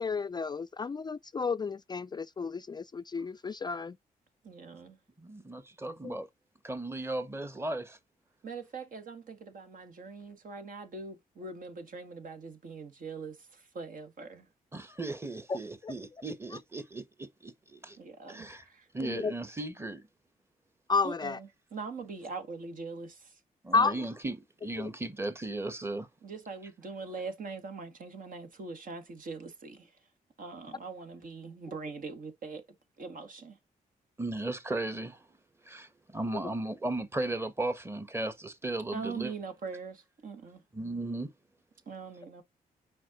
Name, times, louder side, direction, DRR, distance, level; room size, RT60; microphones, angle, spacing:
voice 1, 0.0-4.0 6.0-6.2 15.5-15.6 15.8-15.9 19.0-19.3 20.9-21.4 23.7-24.0 24.8-24.9, left 4 dB, 30° left, 0.4 m, -31 dB
voice 2, 4.4-5.0 8.4-14.5 18.0-18.9 21.0-23.4 26.2-30.0 30.4-32.6 33.0-33.6 38.9-40.6 41.9-42.4, right 4 dB, 60° right, 2.1 m, -42 dB
voice 3, 5.2-6.3 6.6-8.0 14.7-18.0 18.3-18.6 18.9-20.0 23.6-26.1 34.2-35.2 35.6-39.3 40.7-41.3, right 2 dB, 15° right, 1.4 m, -36 dB
6.2 x 4.7 x 3.9 m
cardioid pair, 70°, 15 cm